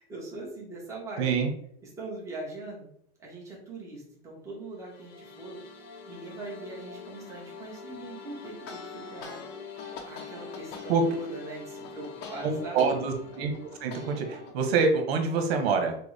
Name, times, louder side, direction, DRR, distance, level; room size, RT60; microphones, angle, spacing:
voice 1, 0.0-1.4 2.0-2.9 3.2-5.6 6.1-9.5 10.1-13.0, right 2 dB, 10° right, -3 dB, 1.0 m, -41 dB
voice 2, 1.2-1.5 10.9-11.0 12.4-13.5 13.8-16.0, right 5 dB, 85° right, 5 dB, 1.1 m, -26 dB
sound 1, 4.7-14.8, left 5 dB, 85° left, 1.2 m, -46 dB
sound 2, 8.4-12.9 13.3-14.5, left 5 dB, 35° left, 0.8 m, -44 dB
6.0 x 2.2 x 3.4 m, 0.69 s
supercardioid pair, 170°, 30 cm